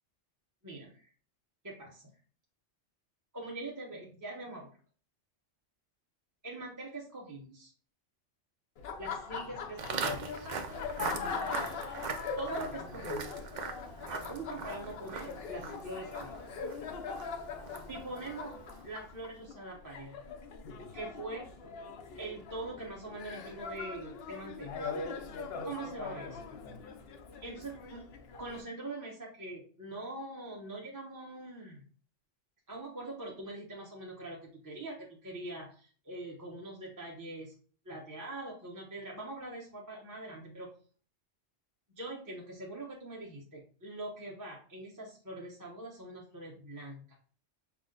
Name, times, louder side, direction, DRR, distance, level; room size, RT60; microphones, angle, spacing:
voice 1, 0.6-1.1 1.6-2.1 3.3-4.7 6.4-7.7 9.0-10.5 12.4-13.3 14.1-16.3 17.2-17.3 17.9-18.5 18.8-20.2 20.9-21.5 22.2-24.8 25.6-26.4 27.4-28.1 28.4-31.8 32.7-37.5 37.9-40.7 41.9-47.2, right 2 dB, 15° right, -4 dB, 0.9 m, -43 dB
Laughter, 8.8-28.6, left 5 dB, 60° left, 0.7 m, -41 dB
Walk footsteps, 9.8-19.0, right 5 dB, 55° right, 0.5 m, -41 dB
5.9 x 2.1 x 3.8 m, 0.42 s
omnidirectional pair, 1.2 m